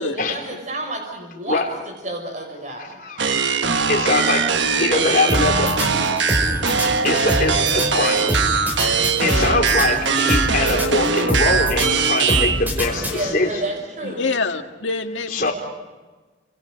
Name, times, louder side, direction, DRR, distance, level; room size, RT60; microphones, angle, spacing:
voice 1, 0.0-3.0 6.8-6.9 12.9-14.3, right 1 dB, 40° right, 4 dB, 5.8 m, -31 dB
voice 2, 3.0-4.5 4.8-5.7 7.0-8.3 8.9-13.5 15.3-15.5, left 2 dB, 45° left, 1 dB, 4.2 m, -23 dB
sound 1, 3.2-12.6, right 5 dB, 75° right, 1.2 m, -21 dB
voice 3, 3.9-6.8 7.6-8.3, left 2 dB, 30° left, -1 dB, 7.3 m, -40 dB
sound 2, 5.3-13.6, equal, 10° right, 5.3 m, -25 dB
voice 4, 14.0-15.5, left 3 dB, 85° left, 5 dB, 2.0 m, -26 dB
29.5 x 27.0 x 5.2 m, 1.3 s
head